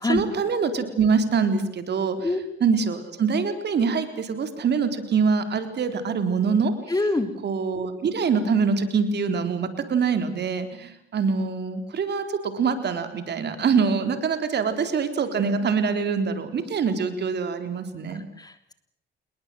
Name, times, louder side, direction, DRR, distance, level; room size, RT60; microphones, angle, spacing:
voice 1, 0.0-2.3 2.6-6.7 7.4-18.2, right 5 dB, 60° right, 8 dB, 4.0 m, -24 dB
voice 2, 6.9-7.3 18.1-18.7, left 2 dB, 20° left, 9 dB, 3.3 m, -26 dB
28.5 x 21.5 x 7.8 m, 0.72 s
cardioid pair, 90°, 20 cm